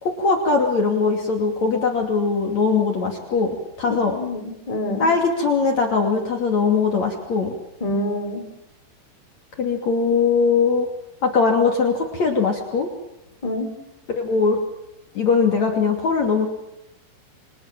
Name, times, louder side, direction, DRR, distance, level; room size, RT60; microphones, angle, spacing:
voice 1, 0.0-4.2 5.0-7.6 9.6-10.9 11.2-12.9 14.1-14.6 15.2-16.5, left 4 dB, 45° left, 2 dB, 3.6 m, -20 dB
voice 2, 3.9-5.1 7.8-8.5 13.4-13.7, left 1 dB, 10° left, 4 dB, 3.6 m, -27 dB
29.5 x 25.5 x 7.4 m, 0.87 s
omnidirectional pair, 5.0 m